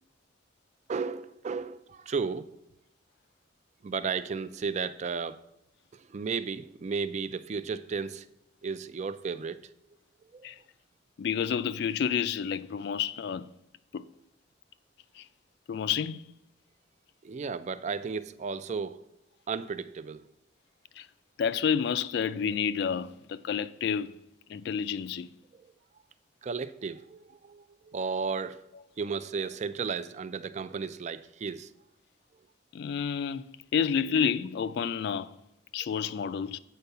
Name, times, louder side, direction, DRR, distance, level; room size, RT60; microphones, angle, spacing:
voice 1, 0.9-2.5 3.8-5.4 5.9-8.3 8.6-9.6 10.3-10.5 17.2-19.0 19.5-20.3 25.5-25.7 26.4-28.6 29.0-31.7, right 5 dB, 40° right, 0.3 m, -34 dB
voice 2, 11.2-13.5 13.9-14.1 15.2-15.3 15.7-16.2 21.0-21.1 21.4-24.1 24.5-25.3 32.7-33.4 33.7-35.3 35.7-36.6, left 7 dB, 65° left, 0.3 m, -29 dB
8.4 x 4.5 x 6.6 m
head